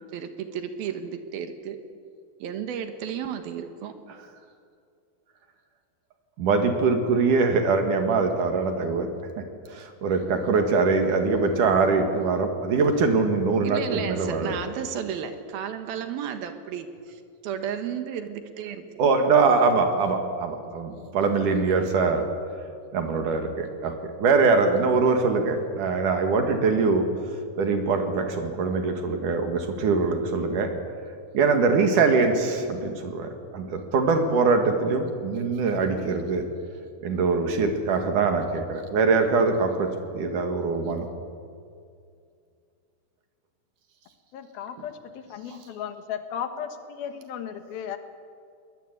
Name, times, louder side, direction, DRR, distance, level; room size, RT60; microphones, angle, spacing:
voice 1, 0.1-1.8 2.4-4.0 13.6-19.1, right 8 dB, 85° right, 8 dB, 3.3 m, -33 dB
voice 2, 6.4-9.1 9.7-14.6 19.0-22.3 22.9-23.9 24.2-27.1 27.6-30.7 31.3-36.4 37.0-39.9 40.1-41.1, right 4 dB, 65° right, 5 dB, 3.3 m, -23 dB
voice 3, 44.3-46.7 47.0-48.0, left 8 dB, 80° left, 8 dB, 3.2 m, -35 dB
22.5 x 19.5 x 9.4 m, 2.3 s
omnidirectional pair, 4.2 m